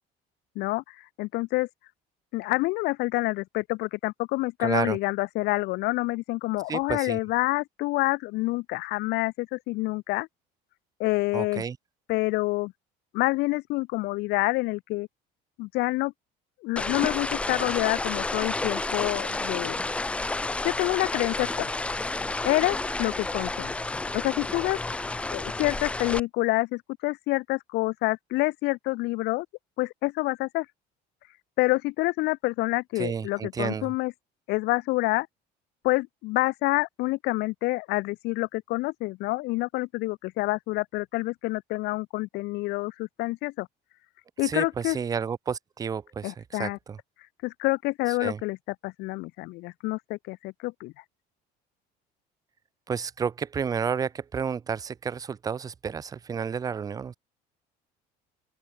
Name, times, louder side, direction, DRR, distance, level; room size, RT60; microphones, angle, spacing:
voice 1, 0.6-1.7 2.3-10.3 11.0-11.6 12.1-12.7 13.1-15.1 15.6-16.1 16.6-19.8 20.6-21.7 22.4-23.8 24.1-25.0 25.3-29.5 29.8-30.7 31.6-34.1 34.5-35.3 35.8-43.7 44.4-45.0 46.2-46.8 47.4-48.6 48.8-50.9, left 21 dB, 65° left, 2.4 m, -27 dB
voice 2, 4.6-5.0 6.7-7.2 11.3-11.8 33.0-33.9 44.4-47.0 48.2-48.4 52.9-57.1, right 6 dB, 20° right, 1.1 m, -31 dB
sound 1, 16.8-26.2, left 2 dB, 5° left, 0.5 m, -30 dB
open air
cardioid pair, 180°, 18 cm